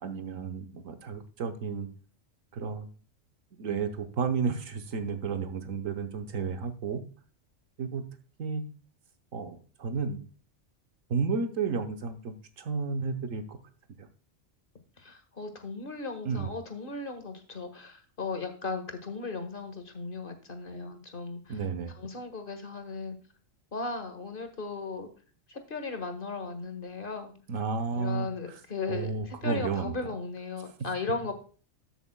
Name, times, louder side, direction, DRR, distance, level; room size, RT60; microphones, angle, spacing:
voice 1, 0.0-1.9 2.5-2.9 3.6-7.0 7.8-8.0 8.4-8.6 9.3-10.2 11.1-13.6 14.0-14.1 16.2-16.5 21.5-21.9 27.5-28.6 28.9-29.9, right 5 dB, 85° right, 8 dB, 1.3 m, -32 dB
voice 2, 15.0-21.6 21.9-23.2 23.7-25.1 25.5-27.3 28.0-31.3, left 3 dB, 45° left, 7 dB, 1.8 m, -36 dB
13.5 x 7.2 x 2.2 m, 0.38 s
omnidirectional pair, 1.3 m